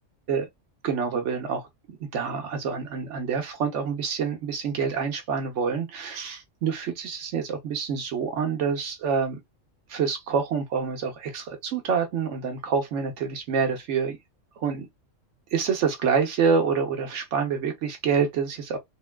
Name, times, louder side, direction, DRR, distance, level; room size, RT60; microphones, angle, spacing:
voice 1, 0.8-9.4 9.9-14.2 14.6-14.9 15.5-18.8, right 6 dB, 70° right, 1.1 m, -27 dB
3.6 x 2.3 x 2.2 m
omnidirectional pair, 1.3 m